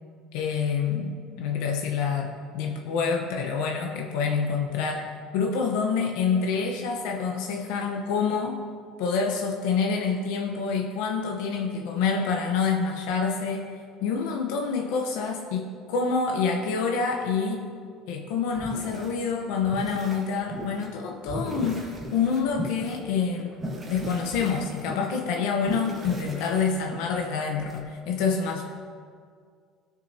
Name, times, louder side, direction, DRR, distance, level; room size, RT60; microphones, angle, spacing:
voice 1, 0.3-8.6 9.0-13.7 14.0-17.7 18.1-23.6 23.8-28.6, left 5 dB, 80° left, 2 dB, 0.9 m, -27 dB
sound 1, 18.5-19.2 19.6-20.9 21.3-27.8, right 1 dB, 20° right, 1.5 m, -38 dB
18.0 x 6.5 x 2.8 m, 2.1 s
cardioid pair, 145°, 0 cm